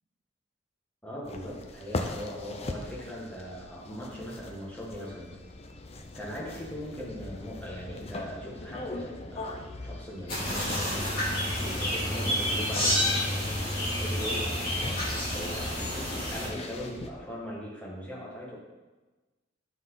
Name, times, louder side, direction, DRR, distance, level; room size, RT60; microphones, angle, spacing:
voice 1, 1.0-5.4 6.1-13.4 13.7-14.5 15.3-18.6, equal, 5° left, -5 dB, 1.7 m, -40 dB
sound 1, 1.2-17.1, left 2 dB, 30° left, 0.6 m, -41 dB
sound 2, 10.3-16.5, left 1 dB, 50° left, 2.4 m, -29 dB
9.0 x 5.9 x 3.9 m, 1.2 s
head